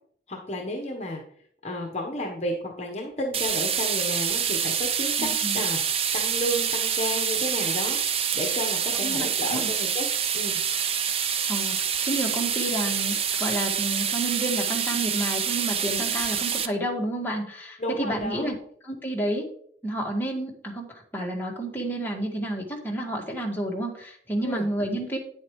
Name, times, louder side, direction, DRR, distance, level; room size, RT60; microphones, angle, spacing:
voice 1, 0.3-1.2 1.6-5.3 5.5-5.8 6.1-10.1 10.3-10.6 17.8-18.6 24.4-24.7, left 1 dB, 40° left, 2 dB, 1.1 m, -32 dB
sound 1, 3.3-16.7, right 7 dB, 30° right, 0.5 m, -26 dB
voice 2, 5.2-5.6 9.0-9.7 11.5-18.5 18.8-19.4 19.8-25.2, right 1 dB, 10° left, -1 dB, 1.8 m, -30 dB
9.6 x 8.2 x 3.2 m, 0.62 s
head